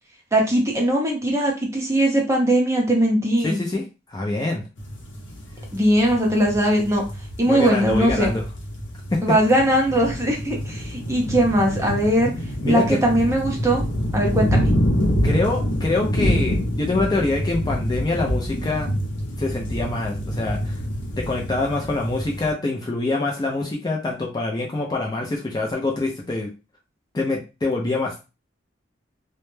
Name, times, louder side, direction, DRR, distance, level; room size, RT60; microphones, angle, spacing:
voice 1, 0.3-3.6 5.7-7.0 7.4-8.3 9.2-12.3 12.6-13.8 14.1-14.7, right 1 dB, 15° right, -1 dB, 0.6 m, -20 dB
voice 2, 3.4-4.6 7.4-8.4 9.1-9.2 12.6-13.0 15.2-18.9 19.4-20.8 21.2-26.5 27.1-28.2, left 2 dB, 20° left, -1 dB, 0.4 m, -25 dB
sound 1, 4.8-22.5, equal, 80° left, 0.7 m, -26 dB
2.1 x 2.0 x 3.1 m, 0.30 s
head